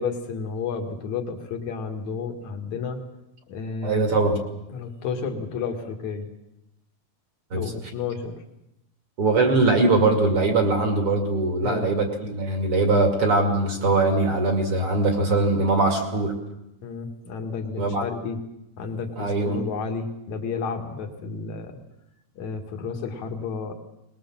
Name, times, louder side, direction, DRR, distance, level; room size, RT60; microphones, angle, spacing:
voice 1, 0.0-3.0 3.5-4.1 4.7-6.3 7.5-8.3 11.6-11.9 16.8-18.4 18.8-21.7 22.4-23.7, left 5 dB, 50° left, 4 dB, 2.8 m, -31 dB
voice 2, 3.8-4.4 7.5-7.7 9.2-16.3 17.8-18.1 19.2-19.6, right 2 dB, 40° right, 3 dB, 2.6 m, -21 dB
21.5 x 20.5 x 7.5 m, 0.87 s
omnidirectional pair, 4.8 m